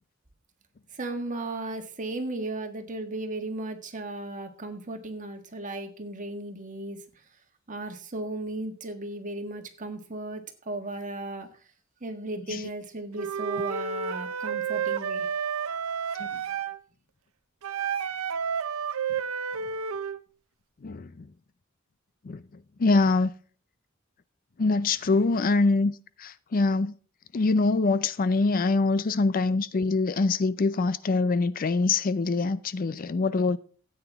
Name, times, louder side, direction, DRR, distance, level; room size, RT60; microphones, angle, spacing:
voice 1, 0.9-7.0 7.7-11.5 12.0-15.3, right 2 dB, 40° right, 1.6 m, -35 dB
Wind instrument woodwind instrument, 13.1-16.8 17.6-20.2, right 6 dB, 90° right, 0.6 m, -30 dB
voice 2, 20.8-21.3 22.2-22.4 22.8-23.3 24.6-25.9 26.2-26.9 27.3-33.6, left 3 dB, 45° left, 0.5 m, -24 dB
13.5 x 8.9 x 3.5 m
head